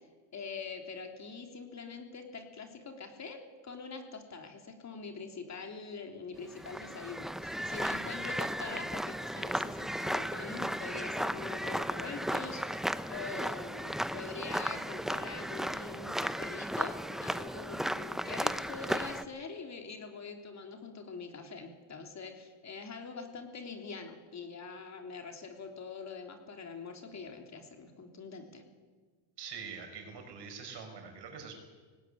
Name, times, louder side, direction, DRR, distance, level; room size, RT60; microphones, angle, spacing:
voice 1, 0.3-28.6, left 4 dB, 35° left, 4 dB, 3.3 m, -44 dB
sound 1, 6.5-19.2, equal, ahead, 0.7 m, -35 dB
voice 2, 29.4-31.5, right 6 dB, 55° right, 5 dB, 5.5 m, -44 dB
18.5 x 17.0 x 9.9 m, 1.4 s
supercardioid pair, 105°, 49 cm